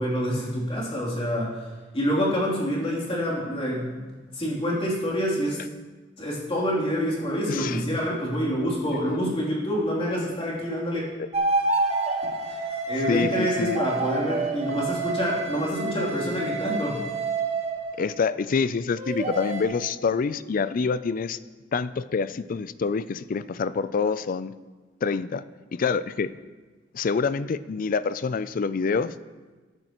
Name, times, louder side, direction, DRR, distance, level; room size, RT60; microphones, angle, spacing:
voice 1, 0.0-5.6 6.2-11.0 12.2-17.0, equal, 30° left, -5 dB, 3.1 m, -27 dB
voice 2, 7.5-7.8 11.2-11.3 13.1-13.8 18.0-21.4 21.7-24.5 25.0-25.4 25.7-26.3 26.9-29.1, left 5 dB, 50° left, 15 dB, 0.4 m, -26 dB
sound 1, 11.3-18.0 18.9-19.6, right 3 dB, 35° right, 1.4 m, -28 dB
14.5 x 10.5 x 3.0 m, 1.3 s
head